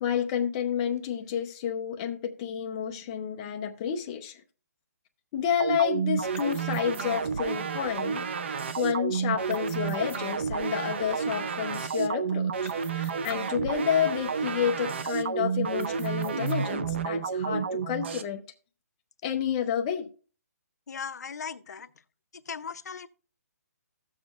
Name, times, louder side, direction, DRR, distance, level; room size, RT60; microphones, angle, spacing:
voice 1, 0.0-4.4 5.3-18.4 19.2-20.1, left 8 dB, 20° left, 0.6 m, -30 dB
sound 1, 5.6-18.2, right 6 dB, 45° right, 0.5 m, -30 dB
voice 2, 20.9-21.9 22.5-23.1, left 6 dB, 75° left, 0.6 m, -38 dB
15.0 x 7.2 x 2.4 m
hypercardioid pair, 170°, 9 cm